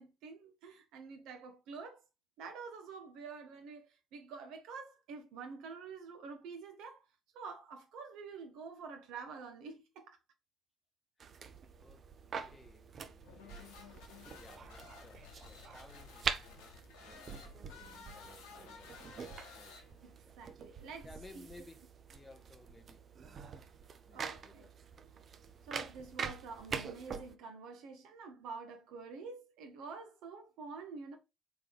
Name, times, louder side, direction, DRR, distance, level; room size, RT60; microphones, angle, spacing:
voice 1, 0.0-2.0 2.4-7.0 7.3-10.2 20.0-21.1 21.3-21.5 24.1-24.7 25.7-31.2, right 4 dB, 65° right, 1.0 m, -48 dB
voice 2, 11.2-11.5 11.8-13.8 14.4-19.3 19.6-20.0 20.2-20.3 21.0-21.8 22.1-23.7 24.1-25.0, left 2 dB, 20° left, 0.5 m, -59 dB
sound 1, 11.2-27.4, right 6 dB, 45° right, 0.6 m, -45 dB
sound 2, 13.2-20.2, left 5 dB, 70° left, 0.9 m, -54 dB
4.5 x 3.3 x 3.4 m
figure-of-eight pair, 50°, 0 cm